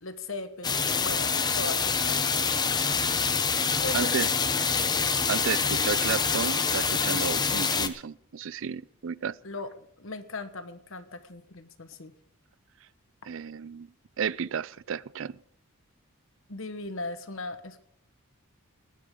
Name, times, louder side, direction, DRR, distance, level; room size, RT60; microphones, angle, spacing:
voice 1, 0.0-2.3 3.8-4.1 9.4-12.1 16.5-17.8, left 2 dB, 60° left, 1.3 m, -38 dB
sound 1, 0.6-7.9, left 5 dB, 20° left, 0.7 m, -26 dB
voice 2, 3.9-4.3 5.3-9.4 13.2-13.9 14.2-15.4, right 6 dB, 60° right, 0.4 m, -32 dB
19.0 x 10.5 x 3.8 m
head